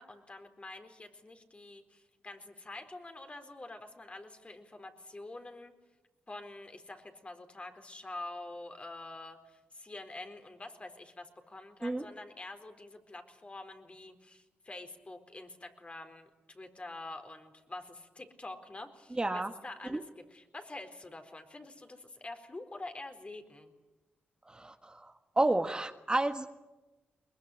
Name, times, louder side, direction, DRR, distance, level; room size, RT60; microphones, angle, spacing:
voice 1, 0.0-5.7 6.3-23.7, left 2 dB, 30° left, 6 dB, 4.2 m, -47 dB
voice 2, 19.2-19.5 19.9-20.0 24.5-26.5, right 2 dB, 20° right, 7 dB, 1.5 m, -31 dB
22.5 x 21.0 x 10.0 m, 1.1 s
cardioid pair, 60°, 4 cm